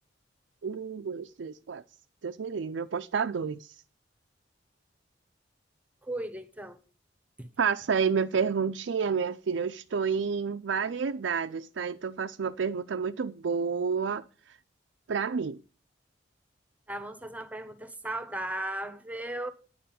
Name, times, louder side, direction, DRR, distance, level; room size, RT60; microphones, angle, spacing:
voice 1, 0.6-1.8 2.2-3.8 7.6-14.6 15.1-15.6, right 6 dB, 75° right, 0.4 m, -30 dB
voice 2, 6.0-6.8 7.4-7.5 16.9-19.5, right 1 dB, 10° right, 1.0 m, -36 dB
10.0 x 6.9 x 7.5 m
head